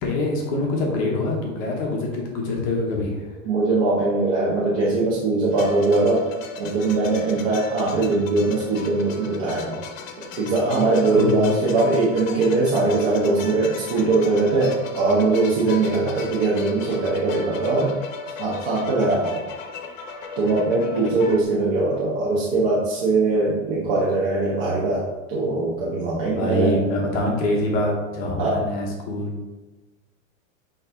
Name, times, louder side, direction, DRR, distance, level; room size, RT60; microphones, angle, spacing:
voice 1, 0.0-3.3 11.1-11.6 26.3-29.4, left 2 dB, 20° left, -1 dB, 0.8 m, -25 dB
voice 2, 3.4-6.3 6.6-9.8 10.4-17.9 18.4-19.4 20.4-25.0 25.3-26.9 28.4-28.6, right 3 dB, 45° right, -6 dB, 1.3 m, -21 dB
sound 1, 5.5-21.4, left 5 dB, 75° left, 1.0 m, -37 dB
8.7 x 3.0 x 3.6 m, 1.1 s
supercardioid pair, 180°, 39 cm